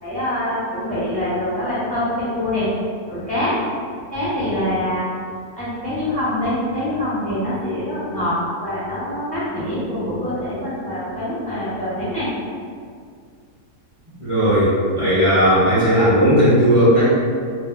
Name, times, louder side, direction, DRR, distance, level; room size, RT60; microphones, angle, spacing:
voice 1, 0.0-2.7 3.1-3.5 4.1-5.0 5.6-12.3, left 1 dB, 5° left, -13 dB, 1.2 m, -24 dB
voice 2, 14.2-17.1, equal, 40° right, -14 dB, 0.4 m, -16 dB
2.8 x 2.6 x 3.2 m, 2.1 s
omnidirectional pair, 1.7 m